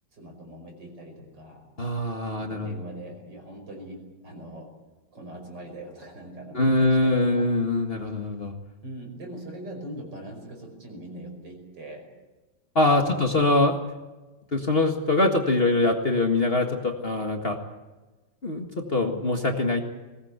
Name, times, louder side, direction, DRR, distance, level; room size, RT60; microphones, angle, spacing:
voice 1, 0.1-1.7 2.4-4.7 5.1-7.5 8.8-12.1 13.0-13.3, right 1 dB, 60° right, 3 dB, 5.9 m, -41 dB
voice 2, 1.8-2.7 6.5-8.5 12.7-13.7 14.5-17.6 18.4-19.8, left 2 dB, 30° left, 3 dB, 1.8 m, -23 dB
21.5 x 18.0 x 8.2 m, 1.2 s
omnidirectional pair, 2.1 m